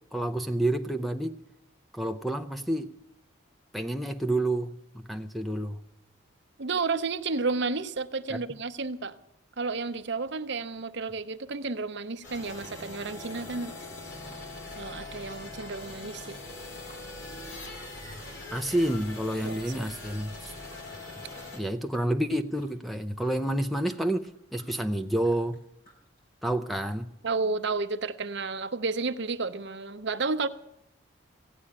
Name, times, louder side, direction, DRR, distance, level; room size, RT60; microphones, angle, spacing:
voice 1, 0.1-1.4 1.9-2.9 3.7-5.8 8.3-8.4 18.5-20.5 21.5-25.6 26.4-27.1, right 1 dB, ahead, 7 dB, 0.5 m, -29 dB
voice 2, 6.6-9.1 9.6-13.7 14.8-16.4 19.4-19.9 27.2-30.5, right 4 dB, 55° right, 10 dB, 0.7 m, -31 dB
sound 1, 12.2-21.6, left 2 dB, 60° left, 3.3 m, -42 dB
Chewing mastication, 13.2-13.8 14.1-18.4 18.7-19.1 19.4-19.7 20.0-26.5, equal, 45° left, 4.8 m, -56 dB
16.0 x 8.6 x 10.0 m, 0.80 s
head